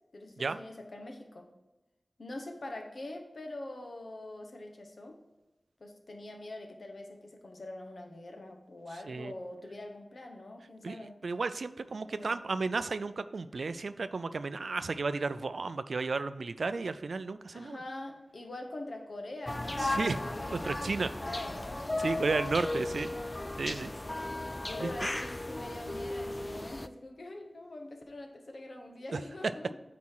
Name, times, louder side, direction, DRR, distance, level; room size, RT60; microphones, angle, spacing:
voice 1, 0.1-1.5 2.2-5.2 5.8-11.2 12.1-12.4 17.5-23.3 24.0-29.8, left 2 dB, 65° left, 3 dB, 1.2 m, -44 dB
voice 2, 11.2-17.8 19.8-20.2 20.5-21.1 22.0-23.1 23.6-23.9 24.8-24.9 29.1-29.2, right 4 dB, 85° right, 13 dB, 0.4 m, -33 dB
sound 1, 19.5-26.9, left 2 dB, 25° left, 0.3 m, -36 dB
8.4 x 4.2 x 4.6 m, 1.1 s
wide cardioid pair, 80°, 0 cm